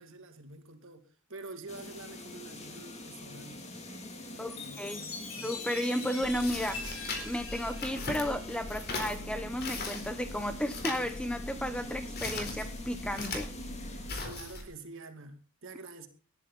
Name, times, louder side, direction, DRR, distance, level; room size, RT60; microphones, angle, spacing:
voice 1, 0.0-3.6 4.3-5.5 14.2-16.1, right 3 dB, 60° right, 2.5 m, -47 dB
sound 1, 1.7-14.2, left 1 dB, 30° left, 2.8 m, -45 dB
voice 2, 4.4-5.0 5.4-7.0 7.2-13.5, equal, 5° left, 0.8 m, -33 dB
Chime, 4.5-9.1, left 3 dB, 70° left, 6.8 m, -43 dB
sound 2, 6.2-14.6, left 3 dB, 45° left, 4.2 m, -39 dB
19.5 x 11.0 x 4.1 m
head